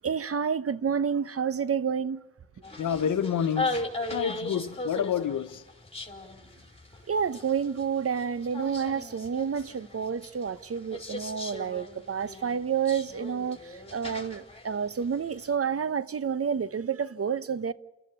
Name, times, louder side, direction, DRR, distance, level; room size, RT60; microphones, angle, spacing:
voice 1, 0.0-2.2 7.1-17.7, right 7 dB, 45° right, 1.0 m, -29 dB
sound 1, 2.6-15.5, left 2 dB, 20° left, 5.3 m, -38 dB
voice 2, 2.8-3.8 4.1-5.6, left 8 dB, 65° left, 1.3 m, -28 dB
29.0 x 14.0 x 7.2 m
supercardioid pair, 45°, 33 cm